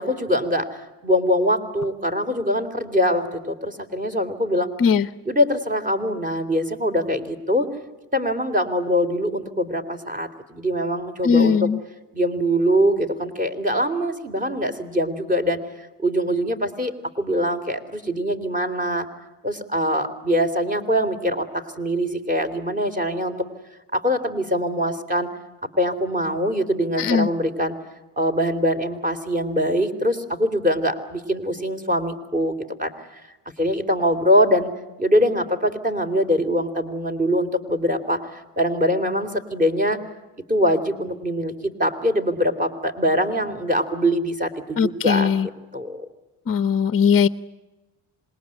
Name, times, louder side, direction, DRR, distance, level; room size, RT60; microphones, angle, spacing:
voice 1, 0.0-4.7 5.3-7.7 8.1-11.7 12.1-15.6 16.0-19.1 19.4-23.4 23.9-25.3 25.8-27.8 28.2-33.2 33.6-34.7 35.0-40.0 40.5-46.1, equal, 20° right, 6 dB, 3.7 m, -23 dB
voice 2, 11.2-11.8 27.0-27.3 44.8-45.5 46.5-47.3, left 6 dB, 35° left, 13 dB, 0.9 m, -19 dB
26.5 x 21.5 x 10.0 m, 1.1 s
cardioid pair, 105°, 40 cm